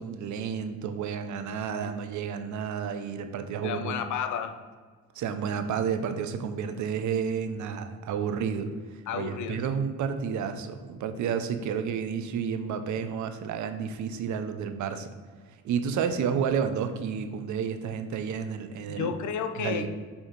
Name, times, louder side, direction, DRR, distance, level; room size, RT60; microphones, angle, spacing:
voice 1, 0.0-4.0 5.1-15.1 15.6-19.1 19.6-19.9, right 7 dB, 75° right, 9 dB, 0.7 m, -31 dB
voice 2, 3.6-4.6 9.1-9.6 18.9-19.9, left 7 dB, 75° left, 8 dB, 0.6 m, -32 dB
7.0 x 2.8 x 5.0 m, 1.5 s
cardioid pair, 90°, 30 cm